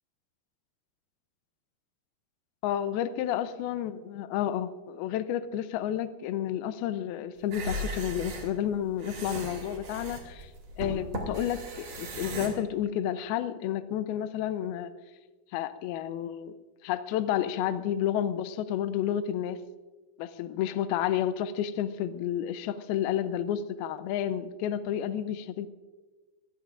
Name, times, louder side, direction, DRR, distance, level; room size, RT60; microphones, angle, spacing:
voice 1, 2.6-10.5 10.8-14.9 15.5-16.5 16.8-19.6 20.2-25.7, left 10 dB, 80° left, 11 dB, 2.6 m, -31 dB
sound 1, 7.4-12.5, right 1 dB, 60° right, 4.4 m, -37 dB
25.0 x 20.0 x 2.5 m, 1.3 s
omnidirectional pair, 4.4 m